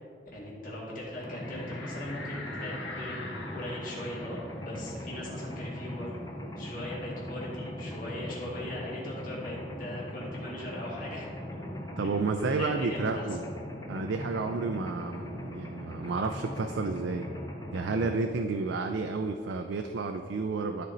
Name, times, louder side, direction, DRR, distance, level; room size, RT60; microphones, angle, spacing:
voice 1, 0.3-3.2 3.5-6.2 6.6-11.3 11.6-13.3, left 1 dB, 50° left, -6 dB, 1.9 m, -39 dB
Mechanisms, 1.2-18.1, left 1 dB, 20° left, 0.8 m, -40 dB
sound 1, 1.3-6.5 6.9-7.0 7.3-9.0, left 3 dB, 75° left, 1.0 m, -45 dB
voice 2, 12.0-13.4 13.9-17.3 17.7-20.9, right 4 dB, 85° right, 5 dB, 0.4 m, -31 dB
12.5 x 4.4 x 3.9 m, 2.5 s
head